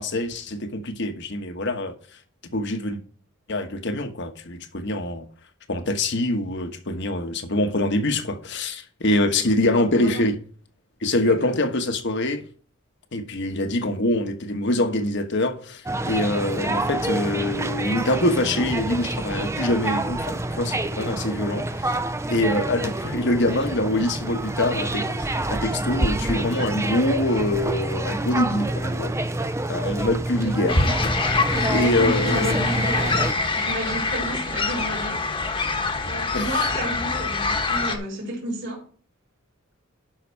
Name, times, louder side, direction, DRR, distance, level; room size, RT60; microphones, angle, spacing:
voice 1, 0.0-1.9 2.5-3.0 3.5-5.2 5.7-10.3 11.0-12.4 13.1-22.0 22.3-29.1 29.6-30.8 31.7-32.5 36.3-36.7, left 1 dB, 60° left, 1.3 m, -24 dB
voice 2, 11.2-11.5 22.3-22.4 30.3-31.0 31.5-35.2 36.0-38.8, right 1 dB, 60° right, 4.1 m, -32 dB
sound 1, 15.9-33.3, right 1 dB, 15° right, 0.6 m, -27 dB
sound 2, 30.7-38.0, left 3 dB, 25° left, 1.3 m, -25 dB
11.0 x 5.7 x 4.7 m
head